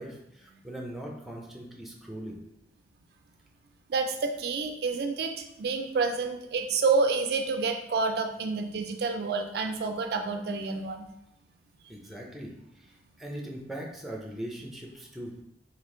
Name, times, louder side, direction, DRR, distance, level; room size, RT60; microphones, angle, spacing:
voice 1, 0.0-2.4 9.0-9.1 11.9-15.4, right 1 dB, ahead, -1 dB, 0.5 m, -40 dB
voice 2, 3.9-11.1, right 4 dB, 60° right, 5 dB, 0.3 m, -28 dB
3.5 x 2.7 x 3.7 m, 0.81 s
head